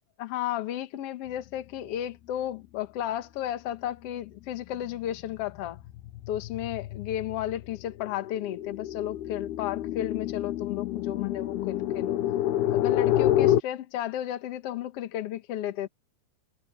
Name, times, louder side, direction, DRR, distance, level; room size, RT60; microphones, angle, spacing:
voice 1, 0.2-5.8 6.3-12.2 12.7-15.9, left 11 dB, 60° left, 1.6 m, -33 dB
sound 1, 3.9-4.3 4.7-13.6, left 12 dB, 85° left, 2.9 m, -28 dB
omnidirectional pair, 4.5 m